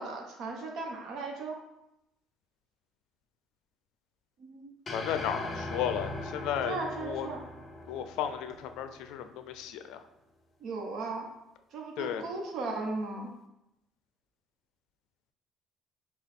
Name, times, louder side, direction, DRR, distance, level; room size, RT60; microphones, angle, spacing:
voice 1, 0.0-1.6 4.4-4.7 6.6-7.4 10.6-11.3 11.7-13.3, right 3 dB, 65° right, 1 dB, 1.0 m, -36 dB
voice 2, 4.9-7.3 7.9-10.0 12.0-12.2, left 9 dB, 80° left, 9 dB, 0.4 m, -34 dB
sound 1, 4.9-9.2, left 2 dB, 25° left, 0.7 m, -40 dB
5.6 x 2.3 x 3.5 m, 0.87 s
cardioid pair, 105°, 0 cm